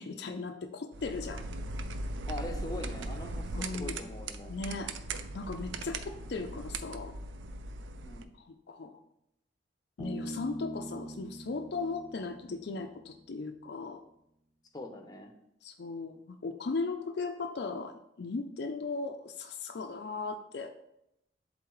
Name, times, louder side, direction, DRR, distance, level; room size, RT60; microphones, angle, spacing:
voice 1, 0.0-1.4 3.5-4.0 4.5-4.9 5.3-7.1 8.4-9.0 10.0-14.0 15.6-20.7, left 3 dB, 55° left, 5 dB, 0.4 m, -37 dB
sound 1, 0.9-8.2, right 2 dB, 75° right, 0.5 m, -39 dB
voice 2, 2.3-4.5 8.0-8.3 14.7-15.3, left 1 dB, 20° left, 4 dB, 0.7 m, -42 dB
Bass guitar, 10.0-13.5, right 1 dB, ahead, 1.4 m, -43 dB
11.0 x 3.8 x 3.2 m, 0.82 s
head